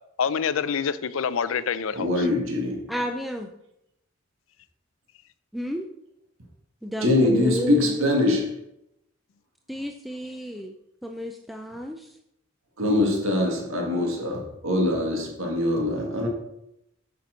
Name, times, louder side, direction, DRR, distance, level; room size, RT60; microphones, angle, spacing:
voice 1, 0.2-2.3, left 6 dB, 80° left, 0.5 m, -26 dB
voice 2, 1.9-2.8 7.0-8.6 12.8-16.3, left 1 dB, 75° right, 2.1 m, -23 dB
voice 3, 2.9-3.5 5.5-5.9 6.8-8.1 9.7-10.7 11.0-12.1, equal, ahead, 0.5 m, -32 dB
8.3 x 5.9 x 5.1 m
head